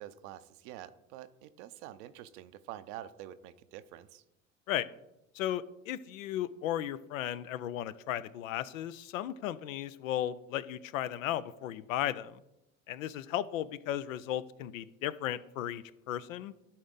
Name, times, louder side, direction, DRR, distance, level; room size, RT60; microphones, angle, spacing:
voice 1, 0.0-4.2, right 12 dB, 65° right, 13 dB, 0.6 m, -47 dB
voice 2, 5.3-12.4 12.9-16.5, left 12 dB, 80° left, 16 dB, 0.5 m, -35 dB
11.5 x 4.2 x 3.8 m, 0.87 s
hypercardioid pair, 65°, 40 cm